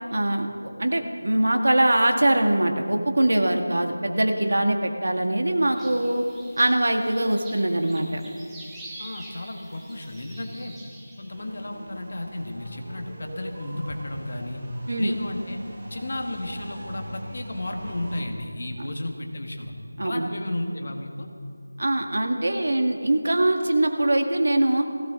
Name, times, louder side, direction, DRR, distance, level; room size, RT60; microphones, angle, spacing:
voice 1, 0.1-6.2 6.6-8.2 14.9-15.1 20.0-20.3 21.8-24.9, right 1 dB, 65° right, 4 dB, 1.6 m, -22 dB
sound 1, 5.8-11.4, right 1 dB, 5° right, 0.8 m, -45 dB
voice 2, 9.0-10.8 11.2-14.6 15.0-15.6 15.9-19.7 20.0-21.3, left 1 dB, 45° left, 3 dB, 1.6 m, -33 dB
sound 2, 11.3-18.2, right 1 dB, 20° right, 1.8 m, -41 dB
20.0 x 16.0 x 3.7 m, 2.3 s
figure-of-eight pair, 175°, 0 cm